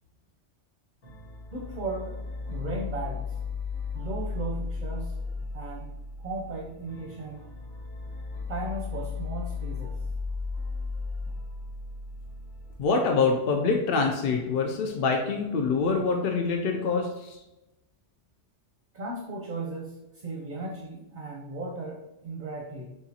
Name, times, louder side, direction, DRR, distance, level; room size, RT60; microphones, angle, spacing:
sound 1, 1.0-12.7, left 4 dB, 85° left, 1.5 m, -35 dB
voice 1, 1.5-3.4 3.9-5.1 5.5-5.9 6.2-7.4 8.5-10.0 18.9-23.0, right 2 dB, 50° right, -1 dB, 0.7 m, -36 dB
voice 2, 12.8-17.4, left 4 dB, 60° left, 2 dB, 0.7 m, -25 dB
6.6 x 2.5 x 2.8 m, 0.95 s
omnidirectional pair, 1.2 m